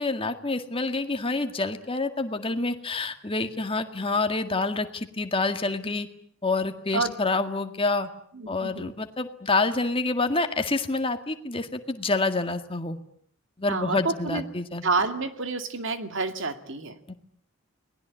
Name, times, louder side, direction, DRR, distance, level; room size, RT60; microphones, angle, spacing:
voice 1, 0.0-6.1 6.4-8.1 8.5-13.0 13.6-14.8 17.1-17.2, left 3 dB, 25° left, 7 dB, 1.9 m, -27 dB
voice 2, 8.3-8.9 13.7-14.4 14.8-17.0, right 3 dB, 65° right, 8 dB, 2.4 m, -29 dB
30.0 x 20.0 x 8.4 m, 0.64 s
head